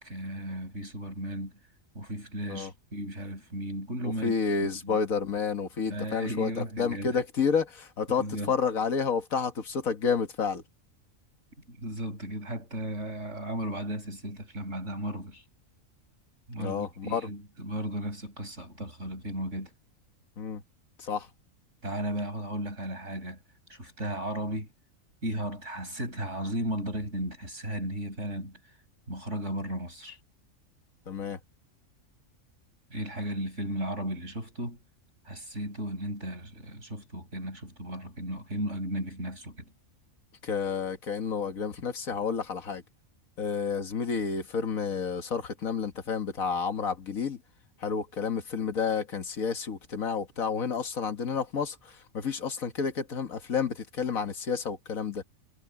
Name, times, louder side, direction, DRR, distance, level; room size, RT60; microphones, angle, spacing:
voice 1, 0.0-1.5 1.9-4.4 4.8-5.0 5.9-7.2 8.1-8.5 11.7-15.4 16.5-19.7 21.8-23.4 23.7-24.7 25.2-28.6 29.1-30.2 32.9-34.8 35.3-39.7, right 1 dB, 60° right, 7.5 m, -35 dB
voice 2, 4.2-10.6 16.6-17.3 20.4-20.6 21.0-21.3 31.1-31.4 40.4-42.8 43.4-47.4 47.8-51.8 52.1-55.2, left 6 dB, 85° left, 2.0 m, -30 dB
omnidirectional pair, 1.4 m